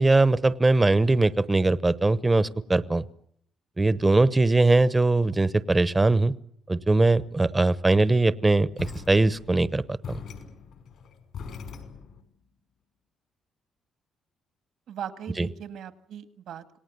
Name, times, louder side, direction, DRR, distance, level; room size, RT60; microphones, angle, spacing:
voice 1, 0.0-3.0 3.8-6.3 6.7-9.8 15.4-15.5, right 2 dB, 20° right, 15 dB, 0.9 m, -21 dB
sound 1, 8.8-12.3, left 6 dB, 70° left, 5.3 m, -41 dB
voice 2, 14.9-16.8, right 9 dB, 75° right, 10 dB, 2.0 m, -39 dB
27.0 x 18.5 x 9.5 m, 0.70 s
cardioid pair, 90°, 0 cm